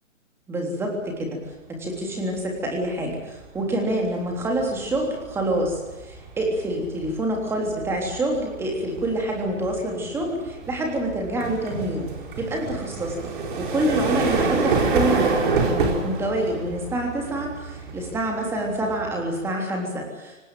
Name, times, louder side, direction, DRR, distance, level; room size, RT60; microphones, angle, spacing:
voice 1, 0.5-1.4 1.7-12.1 12.4-13.1 13.6-20.5, right 1 dB, 5° right, 1 dB, 3.4 m, -27 dB
sound 1, 2.1-2.4 2.8-19.5, right 4 dB, 40° right, 4.5 m, -28 dB
25.0 x 19.5 x 7.7 m, 1.1 s
hypercardioid pair, 165°, 39 cm